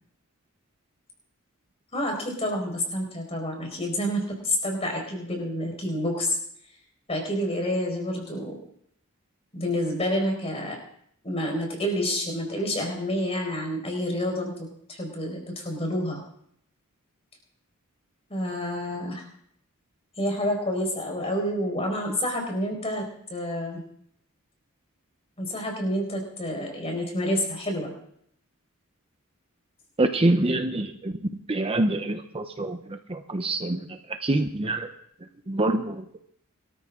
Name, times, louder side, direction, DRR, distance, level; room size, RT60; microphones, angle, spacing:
voice 1, 1.9-6.4 7.1-8.5 9.5-10.8 11.2-16.2 18.3-19.2 20.2-23.0 23.3-23.8 25.4-27.9, equal, 25° left, 1 dB, 4.8 m, -28 dB
voice 2, 30.0-31.1 31.5-34.9 35.5-36.2, right 2 dB, 25° right, 7 dB, 0.7 m, -26 dB
24.0 x 13.5 x 3.7 m, 0.69 s
head